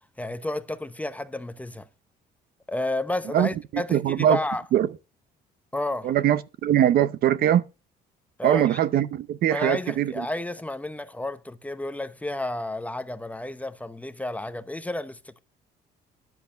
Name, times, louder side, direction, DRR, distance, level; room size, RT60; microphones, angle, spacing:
voice 1, 0.2-1.9 2.7-4.6 5.7-6.1 8.4-8.8 9.5-15.4, left 1 dB, 10° left, 0.8 m, -31 dB
voice 2, 3.3-4.4 4.7-4.9 6.0-7.6 8.4-10.3, right 11 dB, 65° right, 0.8 m, -22 dB
10.5 x 7.8 x 5.1 m
cardioid pair, 110°, 17 cm